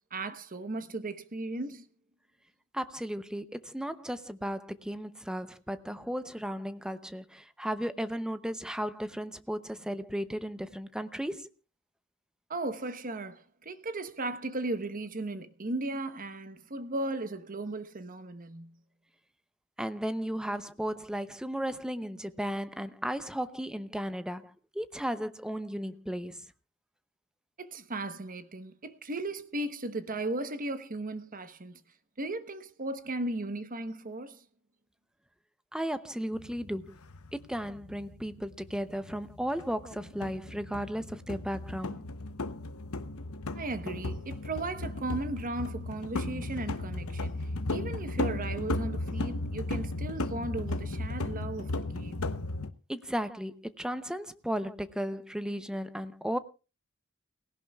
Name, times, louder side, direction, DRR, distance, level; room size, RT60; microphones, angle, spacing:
voice 1, 0.1-1.9 12.5-18.7 27.6-31.8 32.2-34.4 43.5-52.4, right 2 dB, 40° right, 1.1 m, -36 dB
voice 2, 2.7-11.5 19.8-26.4 35.7-37.0 37.3-42.0 52.9-56.4, equal, 5° right, 0.7 m, -35 dB
sound 1, 36.3-52.7, left 2 dB, 90° left, 0.9 m, -35 dB
18.5 x 16.5 x 2.3 m
head